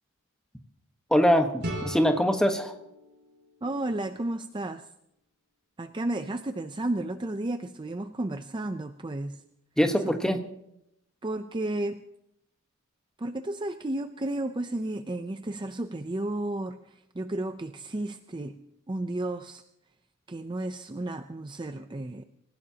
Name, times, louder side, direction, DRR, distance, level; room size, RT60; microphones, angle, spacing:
voice 1, 1.1-2.7 9.8-10.4, equal, 5° left, 5 dB, 1.2 m, -23 dB
sound 1, 1.6-4.5, equal, 50° right, 5.2 m, -39 dB
voice 2, 3.6-4.9 5.8-9.4 10.0-10.1 11.2-12.0 13.2-18.6 18.9-19.6 20.3-22.2, right 1 dB, 20° right, 8 dB, 0.5 m, -33 dB
26.0 x 16.0 x 2.9 m, 0.79 s
head